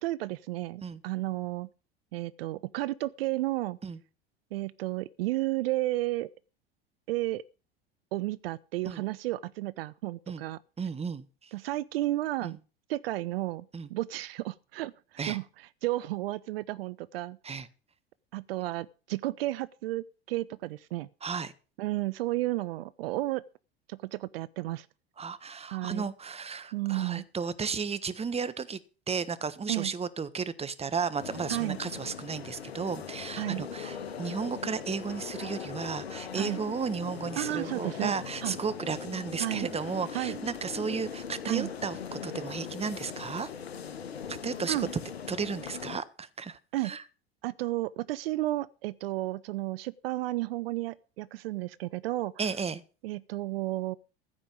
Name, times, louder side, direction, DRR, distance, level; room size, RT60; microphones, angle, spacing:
voice 1, 0.0-1.7 2.1-3.8 4.5-6.3 7.1-7.4 8.1-10.6 11.5-12.6 12.9-17.4 18.3-21.1 21.8-23.4 23.9-24.9 25.7-26.1 26.7-27.2 29.7-29.9 31.5-31.8 33.4-33.7 36.4-36.6 37.4-38.1 38.4-38.5 39.4-39.7 40.1-40.4 41.5-41.7 44.7-44.9 46.7-46.9 47.4-52.3 53.0-54.0, right 17 dB, 70° right, 0.6 m, -32 dB
voice 2, 10.8-11.5 12.4-12.6 13.7-13.9 15.2-15.4 17.4-17.7 21.2-21.5 25.2-28.8 29.1-43.5 44.3-44.8 45.3-46.6 46.8-47.0 52.4-52.8, right 5 dB, 20° right, 1.3 m, -34 dB
sound 1, 31.2-46.0, left 7 dB, 85° left, 1.3 m, -40 dB
15.0 x 5.1 x 8.6 m
hypercardioid pair, 80°, 30 cm